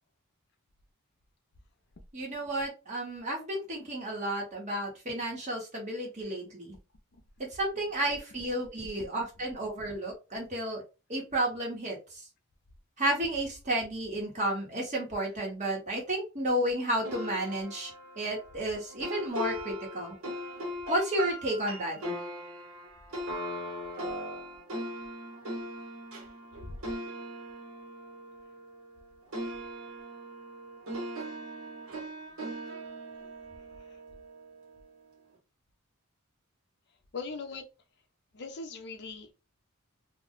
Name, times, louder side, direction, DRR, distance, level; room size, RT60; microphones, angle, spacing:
voice 1, 2.1-6.8 7.5-10.8 11.1-12.2 13.0-17.9 18.2-20.1 20.9-22.0, right 1 dB, 35° right, 1.2 m, -32 dB
sound 1, 17.0-29.0 29.3-34.5, equal, 65° right, 1.3 m, -39 dB
voice 2, 37.1-37.6 38.3-39.3, left 4 dB, 50° left, 0.5 m, -39 dB
2.4 x 2.2 x 3.6 m
head